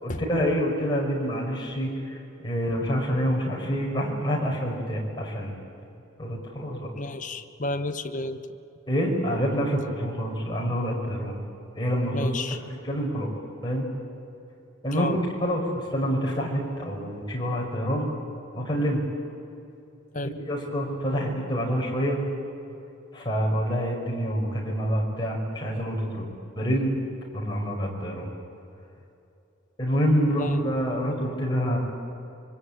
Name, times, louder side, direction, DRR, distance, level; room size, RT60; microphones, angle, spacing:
voice 1, 0.0-5.5 6.2-6.9 8.9-11.4 11.8-12.4 12.8-13.3 13.6-13.9 14.8-18.1 18.5-19.0 20.5-22.2 23.1-26.2 26.6-26.9 27.3-28.3 29.8-31.8, equal, 20° left, -2 dB, 5.7 m, -27 dB
voice 2, 6.9-8.5 12.1-12.6 14.9-15.2 20.1-20.3 30.4-30.6, left 2 dB, 35° left, 8 dB, 1.1 m, -31 dB
26.0 x 23.5 x 9.0 m, 2.7 s
head